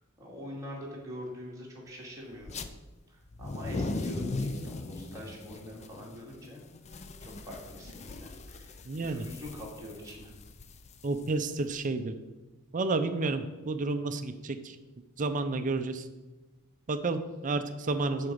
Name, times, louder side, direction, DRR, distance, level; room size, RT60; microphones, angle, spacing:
voice 1, 0.2-2.6 3.1-6.6 6.9-10.3, equal, 15° right, -4 dB, 2.2 m, -44 dB
sound 1, 2.4-2.7 3.3-11.8, left 2 dB, 30° left, 0.5 m, -39 dB
voice 2, 8.9-9.3 11.0-12.1 12.7-14.8 15.2-16.1 16.9-18.3, right 3 dB, 35° right, 9 dB, 0.5 m, -31 dB
6.6 x 4.9 x 6.9 m, 1.1 s
head